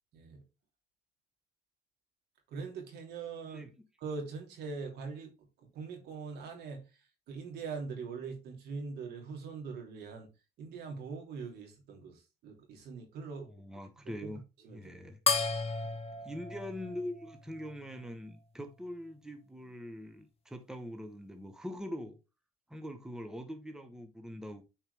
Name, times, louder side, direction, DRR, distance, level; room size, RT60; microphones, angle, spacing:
voice 1, 0.1-0.4 2.5-3.7 4.0-5.3 5.7-6.8 7.3-10.3 10.6-13.5 14.2-14.3 14.6-14.9, right 5 dB, 75° right, 3.0 m, -42 dB
voice 2, 13.5-14.4 14.7-15.6 15.8-15.9 16.2-22.2 22.7-24.6, equal, 5° right, 1.1 m, -43 dB
sound 1, 15.3-18.1, left 5 dB, 35° left, 1.4 m, -34 dB
9.0 x 4.6 x 3.5 m
cardioid pair, 110°, 17 cm